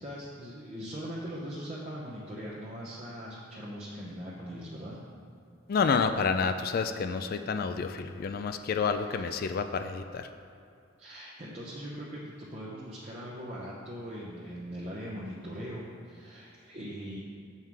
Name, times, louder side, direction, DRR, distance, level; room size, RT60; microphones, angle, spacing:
voice 1, 0.0-5.0 8.9-9.3 11.0-17.2, equal, 35° right, -7 dB, 0.9 m, -41 dB
voice 2, 5.7-10.3, left 5 dB, 45° left, 8 dB, 0.3 m, -29 dB
7.3 x 5.7 x 4.7 m, 2.5 s
head